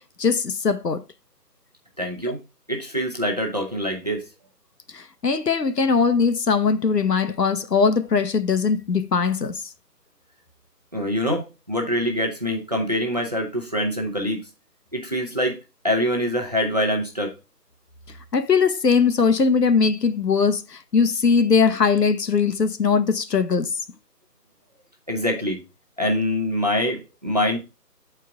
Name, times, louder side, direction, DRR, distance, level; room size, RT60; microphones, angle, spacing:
voice 1, 0.2-1.0 2.3-2.4 4.9-9.6 18.3-23.8, left 5 dB, 75° left, 1.0 m, -20 dB
voice 2, 2.0-2.4 2.7-4.2 10.9-14.4 14.9-15.6 15.8-17.3 25.1-25.6 26.0-27.6, equal, 25° right, 1.0 m, -24 dB
7.3 x 4.6 x 3.4 m
figure-of-eight pair, 170°, 49 cm